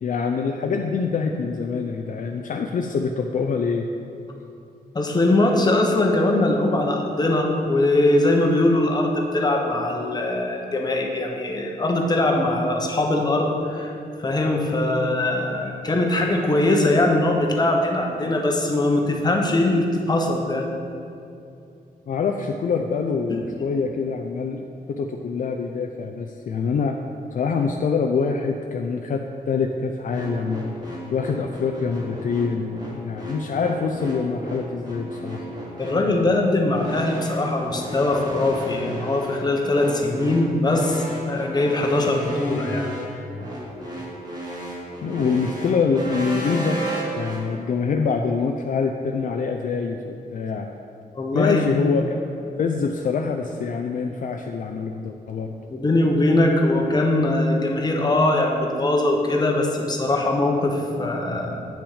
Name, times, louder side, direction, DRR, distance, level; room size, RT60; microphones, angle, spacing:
voice 1, 0.0-3.9 22.1-27.0 27.3-30.7 31.1-35.5 45.0-46.8 47.2-50.7 51.3-52.2 52.6-55.5, left 5 dB, 55° left, 3 dB, 0.5 m, -25 dB
voice 2, 4.9-20.7 23.3-23.4 35.8-42.9 51.1-51.6 55.7-61.6, left 2 dB, 25° left, 1 dB, 1.0 m, -21 dB
sound 1, 30.1-47.4, right 1 dB, 25° right, 1.9 m, -34 dB
8.7 x 6.1 x 4.9 m, 2.6 s
wide cardioid pair, 130°, 16 cm